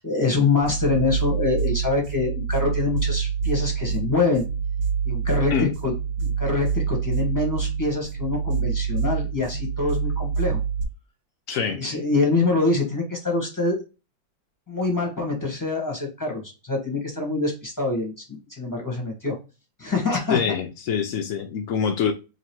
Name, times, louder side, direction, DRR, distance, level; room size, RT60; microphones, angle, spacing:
voice 1, 0.0-4.5 5.0-5.9 6.2-10.6 11.8-13.8 14.7-19.3 19.8-20.4, left 3 dB, 15° left, 0.8 m, -25 dB
sound 1, 0.6-10.8, right 6 dB, 70° right, 0.9 m, -26 dB
voice 2, 11.5-11.8 20.3-22.1, left 7 dB, 90° left, 0.7 m, -25 dB
2.9 x 2.8 x 4.5 m
omnidirectional pair, 2.0 m